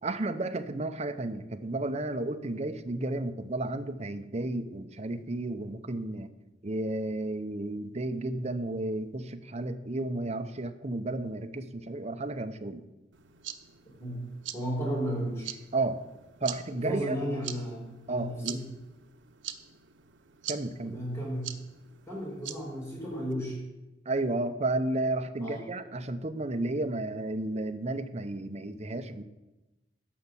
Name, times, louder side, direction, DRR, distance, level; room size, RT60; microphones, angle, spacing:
voice 1, 0.0-6.3 6.6-12.8 15.7-16.0 16.4-17.2 18.1-18.7 20.5-21.0 24.1-29.2, right 2 dB, 35° right, 8 dB, 0.8 m, -32 dB
sound 1, 13.1-23.3, right 11 dB, 90° right, 0.8 m, -44 dB
voice 2, 14.5-15.5 16.8-18.6 20.8-21.5 22.1-23.6 25.4-25.6, equal, 10° left, -8 dB, 4.0 m, -33 dB
13.0 x 5.6 x 8.4 m, 1.0 s
head